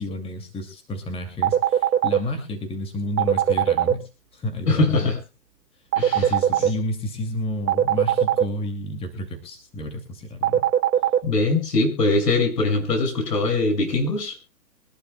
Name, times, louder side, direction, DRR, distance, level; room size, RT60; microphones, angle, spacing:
voice 1, 0.0-5.1 6.1-10.6, left 1 dB, 10° left, 5 dB, 2.6 m, -31 dB
sound 1, 1.4-2.2 3.2-3.9 5.9-6.7 7.7-8.4 10.4-11.2, right 10 dB, 80° right, 1.8 m, -18 dB
voice 2, 4.6-5.2 6.0-6.3 11.2-14.3, left 3 dB, 80° left, 5 dB, 6.3 m, -22 dB
24.0 x 11.5 x 2.3 m, 0.29 s
hypercardioid pair, 140°, 48 cm